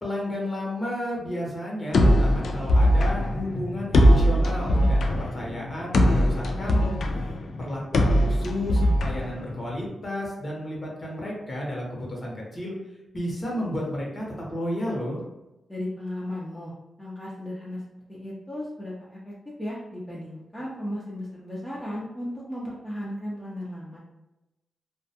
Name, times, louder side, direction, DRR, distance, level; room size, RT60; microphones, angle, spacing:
voice 1, 0.0-7.0 7.6-12.7 13.1-15.2, left 1 dB, 35° left, -3 dB, 0.9 m, -32 dB
sound 1, 1.9-9.9, equal, 75° left, 0.3 m, -21 dB
voice 2, 7.0-7.4 15.7-16.7 17.0-17.8 18.1-24.0, left 1 dB, 15° left, -6 dB, 0.6 m, -35 dB
2.3 x 2.2 x 2.7 m, 0.97 s
cardioid pair, 75°, 0 cm